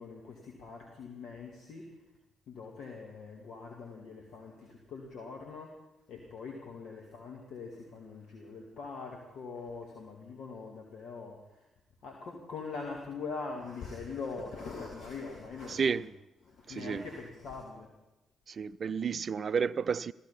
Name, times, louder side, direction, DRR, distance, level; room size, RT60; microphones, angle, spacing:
voice 1, 0.0-1.9 2.5-5.8 6.1-11.7 12.0-16.1 16.4-17.9, left 4 dB, 60° left, 2.4 m, -43 dB
voice 2, 15.7-16.1 16.7-17.0 18.5-20.1, right 6 dB, 45° right, 0.5 m, -31 dB
16.0 x 14.5 x 5.8 m
figure-of-eight pair, 40°, 0 cm